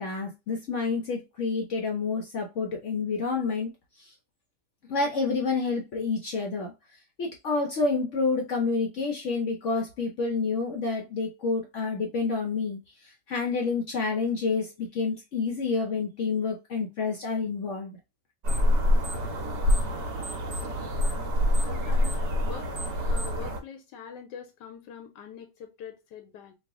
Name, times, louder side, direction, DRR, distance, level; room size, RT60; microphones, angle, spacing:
voice 1, 0.0-3.7 4.0-4.1 4.9-6.7 7.2-18.0, left 4 dB, 65° left, 0.7 m, -29 dB
sound 1, 18.4-23.6, left 1 dB, 65° right, 1.4 m, -26 dB
sound 2, 18.5-18.7 19.0-19.9 20.2-23.5, right 4 dB, 45° right, 0.9 m, -41 dB
voice 2, 20.8-22.7 23.1-26.5, left 7 dB, 85° left, 1.2 m, -44 dB
3.2 x 2.4 x 3.5 m
omnidirectional pair, 1.8 m